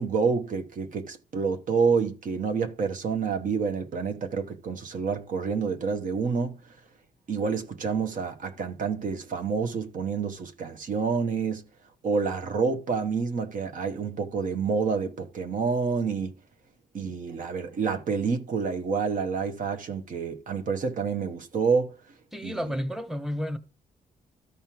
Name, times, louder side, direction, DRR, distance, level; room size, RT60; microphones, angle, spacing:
voice 1, 0.0-6.6 7.3-11.6 12.0-16.3 16.9-22.0 22.4-22.6, right 5 dB, 60° right, 1.0 m, -28 dB
voice 2, 22.3-23.6, equal, ahead, 1.0 m, -31 dB
13.5 x 5.5 x 3.0 m
cardioid pair, 90°, 15 cm